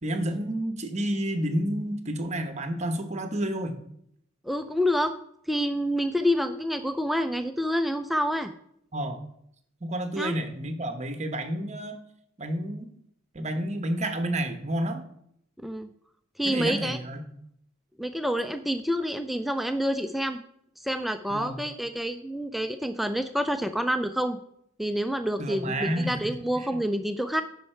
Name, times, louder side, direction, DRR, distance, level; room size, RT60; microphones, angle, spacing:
voice 1, 0.0-3.8 8.9-9.2 9.8-12.0 12.4-12.9 13.3-15.0 16.4-17.3 21.3-21.6 25.4-26.2 26.5-26.7, right 1 dB, 35° right, 7 dB, 0.9 m, -30 dB
voice 2, 4.5-5.1 5.5-8.5 10.2-10.3 15.6-15.9 16.4-17.0 18.0-20.4 20.8-24.4 24.8-27.4, equal, ahead, 8 dB, 0.3 m, -28 dB
9.3 x 5.6 x 4.4 m, 0.71 s
head